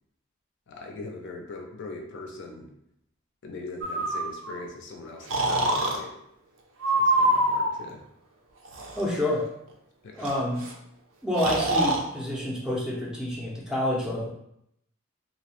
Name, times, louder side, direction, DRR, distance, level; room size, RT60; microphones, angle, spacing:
voice 1, 0.7-2.7 3.4-6.1 6.9-8.0 10.0-10.3, left 3 dB, 60° left, 1 dB, 0.5 m, -40 dB
Breathing, 3.8-4.6 5.3-6.0 6.8-7.8 8.6-9.0 10.2-10.3 10.6-10.7 11.4-12.0, right 1 dB, 65° right, 0.5 m, -24 dB
voice 2, 9.0-9.4 10.2-10.7 11.2-14.3, left 1 dB, 5° right, -4 dB, 0.4 m, -28 dB
2.6 x 2.0 x 2.9 m, 0.75 s
head